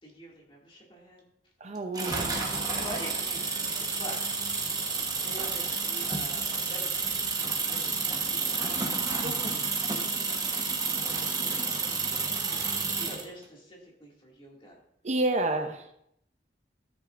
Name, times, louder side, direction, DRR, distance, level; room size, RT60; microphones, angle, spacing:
voice 1, 0.0-1.2 2.7-4.5 5.1-8.6 9.0-14.8 15.4-15.5, equal, 30° left, -2 dB, 2.4 m, -46 dB
voice 2, 1.6-2.3 9.2-9.6 15.0-15.8, right 2 dB, 40° right, 6 dB, 0.7 m, -29 dB
sound 1, 1.9-13.3, right 4 dB, 20° right, 1.2 m, -30 dB
13.0 x 8.2 x 2.6 m, 0.74 s
head